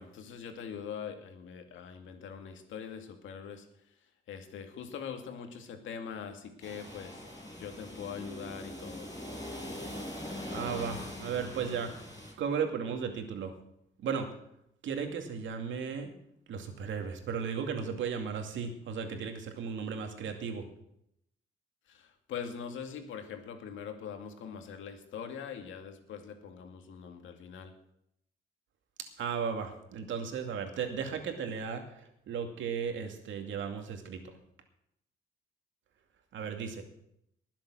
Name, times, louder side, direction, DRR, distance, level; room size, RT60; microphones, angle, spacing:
voice 1, 0.0-3.7 4.3-7.2 7.6-9.1 21.9-27.7, left 7 dB, 80° left, 5 dB, 2.3 m, -42 dB
sound 1, 6.6-12.3, left 1 dB, 20° left, 6.0 m, -42 dB
voice 2, 10.5-11.9 12.4-13.5 14.0-14.3 14.8-16.1 16.5-20.7 29.2-34.2 36.3-36.8, right 6 dB, 75° right, 5 dB, 2.4 m, -35 dB
20.0 x 7.5 x 6.3 m, 0.76 s
cardioid pair, 90°, 20 cm